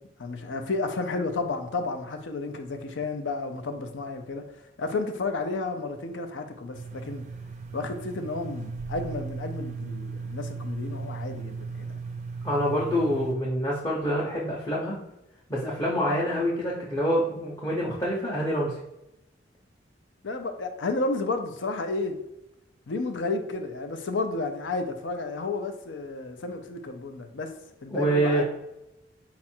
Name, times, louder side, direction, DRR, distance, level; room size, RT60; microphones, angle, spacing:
voice 1, 0.2-4.5 4.8-7.2 7.7-12.0 20.2-22.2 22.9-27.5 27.8-28.4, left 3 dB, 90° left, 0.5 m, -32 dB
sound 1, 6.7-13.4, right 4 dB, 40° right, 0.4 m, -37 dB
voice 2, 12.4-14.9 15.5-18.7 27.9-28.4, equal, 15° left, 0.6 m, -26 dB
4.2 x 2.4 x 4.3 m
head